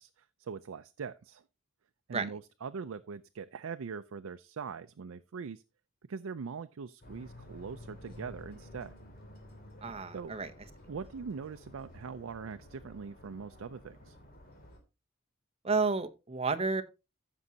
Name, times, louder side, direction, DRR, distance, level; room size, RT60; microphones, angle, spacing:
voice 1, 0.0-1.4 2.1-5.6 6.1-8.9 9.8-10.3 10.9-14.2, right 5 dB, 85° right, 0.4 m, -42 dB
sound 1, 7.0-14.8, left 1 dB, 45° left, 2.6 m, -52 dB
voice 2, 9.8-10.5 15.6-16.8, right 4 dB, 30° right, 0.8 m, -31 dB
15.0 x 6.1 x 2.8 m
head